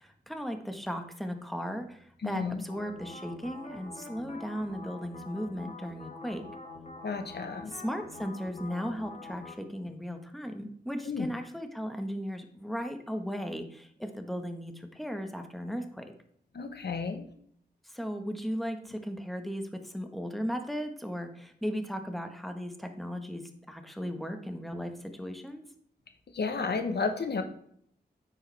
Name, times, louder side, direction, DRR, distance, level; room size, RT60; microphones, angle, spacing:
voice 1, 0.0-6.4 7.7-16.0 17.8-25.6, equal, ahead, 6 dB, 1.5 m, -36 dB
voice 2, 2.2-2.6 7.0-7.7 11.0-11.3 16.5-17.3 26.3-27.4, left 4 dB, 75° left, 6 dB, 1.2 m, -32 dB
sound 1, 2.7-9.5, left 3 dB, 45° left, 2.3 m, -45 dB
9.5 x 8.1 x 3.5 m, 0.65 s
cardioid pair, 60°, 18 cm